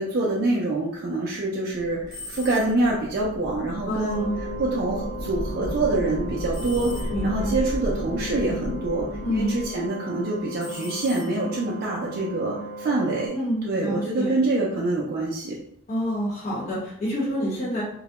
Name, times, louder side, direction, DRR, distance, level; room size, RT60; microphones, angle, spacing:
voice 1, 0.0-4.3 4.6-15.6, right 2 dB, 45° right, -4 dB, 0.4 m, -26 dB
sound 1, 1.7-9.8, equal, 90° left, 0.7 m, -34 dB
sound 2, 2.1-3.0 6.5-7.5 10.6-11.7, left 2 dB, ahead, 0.8 m, -41 dB
voice 2, 3.9-4.4 7.1-7.6 9.2-9.5 13.3-14.3 15.9-17.8, equal, 35° left, -8 dB, 0.9 m, -27 dB
sound 3, 4.1-13.3, equal, 60° left, 0.9 m, -38 dB
2.2 x 2.0 x 2.8 m, 0.72 s
head